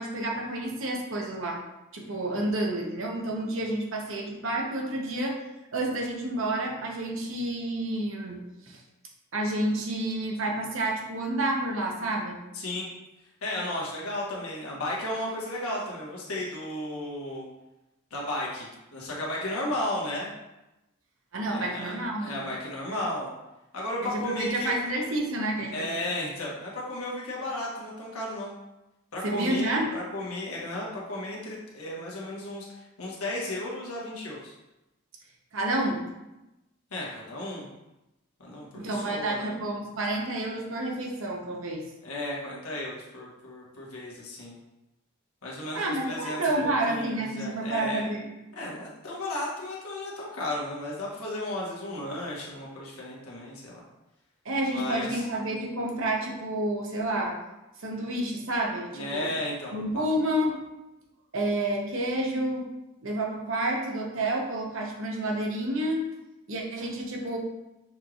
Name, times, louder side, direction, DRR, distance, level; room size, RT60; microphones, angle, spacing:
voice 1, 0.0-1.6 1.9-5.4 5.7-8.4 8.6-8.8 9.3-12.4 21.3-22.4 24.0-25.9 29.2-29.9 35.5-36.0 38.7-41.8 45.7-48.3 54.4-57.4 57.8-59.3 59.7-60.5 61.3-62.7 63.0-66.0 66.5-67.4, right 1 dB, 65° right, -1 dB, 0.9 m, -29 dB
voice 2, 12.5-12.9 13.4-17.5 18.1-20.3 21.5-23.3 23.7-24.8 25.7-28.5 29.1-34.5 36.9-37.7 38.4-39.5 42.0-44.6 45.4-48.1 48.5-53.8 54.7-55.2 58.9-60.0, left 1 dB, 85° left, -4 dB, 1.2 m, -34 dB
6.4 x 3.2 x 2.4 m, 0.97 s
head